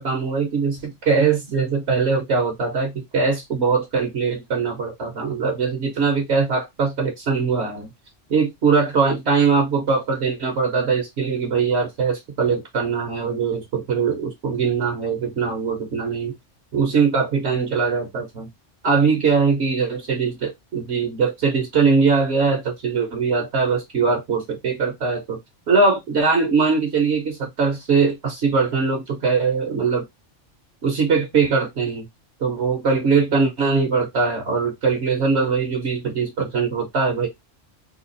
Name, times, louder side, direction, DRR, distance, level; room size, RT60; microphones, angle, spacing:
voice 1, 0.0-7.9 8.3-16.4 16.7-18.5 18.8-25.4 25.7-30.0 30.8-32.1 32.4-37.3, right 5 dB, 60° right, 1.1 m, -21 dB
3.9 x 2.4 x 2.6 m
omnidirectional pair, 1.3 m